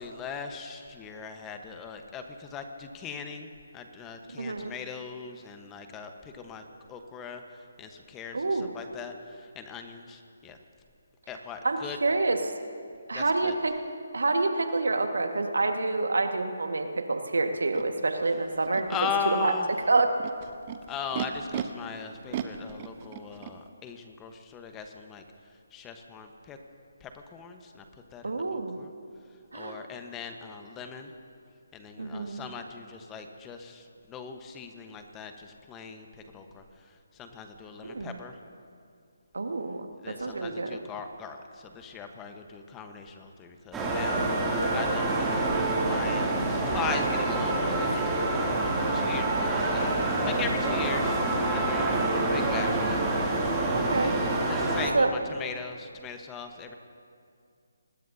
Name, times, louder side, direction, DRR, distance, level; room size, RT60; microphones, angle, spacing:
voice 1, 0.0-3.5 3.7-6.6 6.9-7.4 7.8-10.6 11.3-12.0 13.1-13.5 18.9-19.7 20.9-25.2 25.7-26.6 27.0-27.8 28.1-28.9 29.5-31.1 31.7-36.1 36.3-36.6 37.1-38.4 40.0-51.2 51.5-51.9 52.2-53.0 54.0-54.1 54.5-56.7, left 6 dB, 15° left, 5 dB, 1.2 m, -39 dB
voice 2, 4.3-4.7 8.3-8.7 11.6-12.5 13.1-13.8 14.1-19.0 19.2-19.5 19.9-20.1 28.2-28.8 29.5-29.8 32.0-32.4 37.8-38.2 39.3-40.8 51.9-52.3 53.7-54.5 54.9-55.1, right 3 dB, 75° right, 5 dB, 1.7 m, -28 dB
Animal, 17.7-17.8 18.6-19.1 20.0-21.6 22.3-23.5, right 10 dB, 30° right, 1.0 m, -36 dB
sound 1, 43.7-54.9, right 2 dB, 10° right, 2.7 m, -27 dB
26.0 x 20.0 x 2.8 m, 2.3 s
figure-of-eight pair, 150°, 0 cm